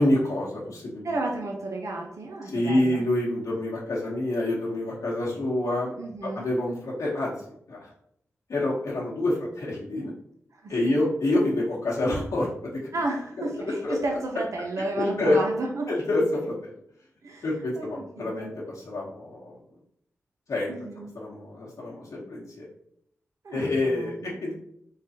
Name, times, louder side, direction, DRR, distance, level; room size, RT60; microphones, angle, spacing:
voice 1, 0.0-1.1 2.5-5.9 6.3-7.4 7.7-7.9 8.5-10.1 10.7-12.9 13.4-13.5 13.8-13.9 15.0-15.4 15.9-16.7 17.4-19.6 20.5-20.7 21.1-22.6 23.5-24.5, left 1 dB, 75° left, -5 dB, 1.0 m, -27 dB
voice 2, 1.0-3.0 6.0-6.5 10.5-11.0 12.9-15.9 17.2-17.5 17.7-18.5 20.7-21.1 23.4-24.4, right 2 dB, 70° right, 1 dB, 0.6 m, -32 dB
3.6 x 3.3 x 2.8 m, 0.72 s
cardioid pair, 65°, 6 cm